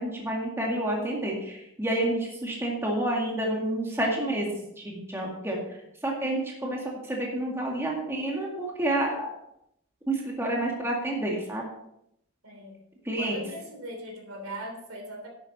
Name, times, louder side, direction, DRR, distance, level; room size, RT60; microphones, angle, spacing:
voice 1, 0.0-4.5 4.8-5.6 6.0-6.8 7.1-9.3 10.1-11.6 13.1-13.4, right 1 dB, 10° right, -2 dB, 2.0 m, -29 dB
voice 2, 12.4-12.8 13.2-15.3, equal, 75° right, 2 dB, 3.2 m, -39 dB
10.5 x 9.0 x 4.2 m, 0.77 s
head